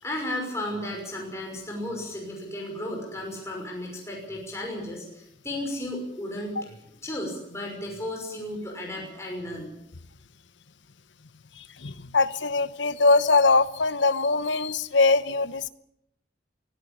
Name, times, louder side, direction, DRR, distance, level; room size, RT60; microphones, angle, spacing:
voice 1, 0.0-6.7 7.0-9.7, left 1 dB, 15° left, -1 dB, 5.9 m, -34 dB
voice 2, 11.6-15.7, left 3 dB, 85° left, 14 dB, 1.0 m, -22 dB
24.0 x 14.5 x 8.8 m, 0.76 s
head